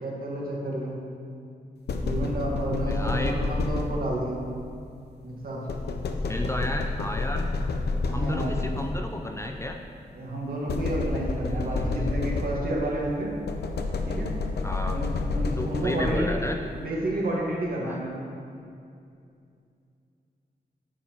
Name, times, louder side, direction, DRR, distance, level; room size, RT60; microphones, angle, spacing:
voice 1, 0.0-0.9 2.0-4.5 5.2-5.7 8.0-8.5 10.1-13.3 14.1-14.3 14.9-16.3 16.8-18.2, right 1 dB, 60° right, -3 dB, 1.4 m, -30 dB
sound 1, 1.9-4.3 5.7-9.3 10.7-12.9 13.5-16.5, left 3 dB, 80° left, 0.6 m, -29 dB
voice 2, 2.9-3.4 6.3-7.5 8.1-9.8 11.8-12.2 14.6-15.1 15.6-16.6 17.8-18.0, left 1 dB, 15° left, 3 dB, 0.4 m, -32 dB
9.5 x 6.4 x 2.9 m, 2.4 s
wide cardioid pair, 130°, 17 cm